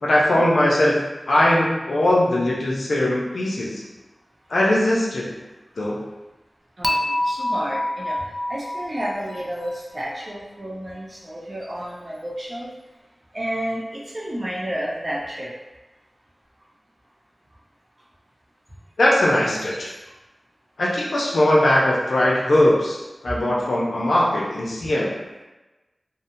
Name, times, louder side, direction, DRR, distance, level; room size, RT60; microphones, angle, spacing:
voice 1, 0.0-1.0 1.3-3.8 4.5-5.3 5.8-6.0 19.0-19.9 20.8-25.1, left 1 dB, 85° left, -4 dB, 0.5 m, -20 dB
Dishes pots and pans / Chink clink, 6.8-10.0, left 1 dB, ahead, 0.3 m, -27 dB
voice 2, 6.8-8.2 8.5-12.7 13.3-15.5 19.7-19.8, equal, 40° right, -5 dB, 0.7 m, -31 dB
2.8 x 2.0 x 2.6 m, 1.1 s
wide cardioid pair, 50°, 0 cm